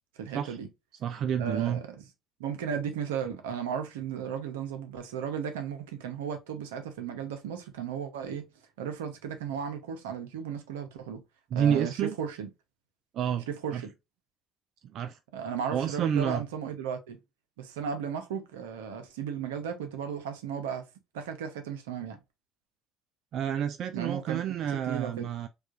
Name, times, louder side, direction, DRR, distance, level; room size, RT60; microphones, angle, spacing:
voice 1, 0.2-0.7 1.4-2.0 2.4-8.5 8.8-11.2 11.5-12.5 13.5-13.9 15.3-17.2 17.6-20.8 21.1-22.2 23.9-25.3, right 7 dB, 85° right, 0.7 m, -35 dB
voice 2, 1.0-1.8 11.5-12.2 13.1-13.4 13.7-13.8 14.9-15.2 15.7-16.4 23.3-25.5, right 9 dB, 60° right, 0.3 m, -29 dB
4.7 x 2.4 x 2.4 m
hypercardioid pair, 60°, 0 cm